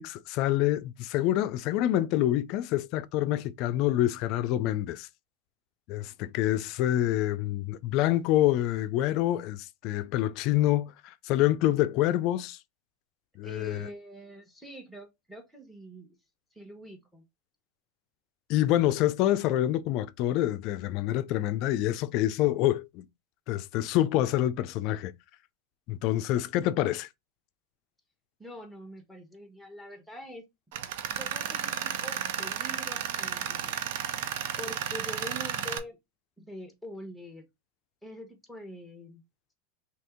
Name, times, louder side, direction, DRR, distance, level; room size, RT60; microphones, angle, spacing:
voice 1, 0.0-5.1 5.9-12.6 13.4-13.9 18.5-23.0 23.5-25.1 25.9-27.1, left 14 dB, 55° left, 0.3 m, -27 dB
voice 2, 13.4-16.1 16.5-17.2 28.4-30.4 31.1-33.8 34.6-36.0 36.4-37.5 38.0-39.2, equal, 5° right, 1.0 m, -44 dB
Tools, 30.7-35.8, right 9 dB, 70° right, 0.4 m, -33 dB
2.8 x 2.7 x 3.5 m
supercardioid pair, 130°, 0 cm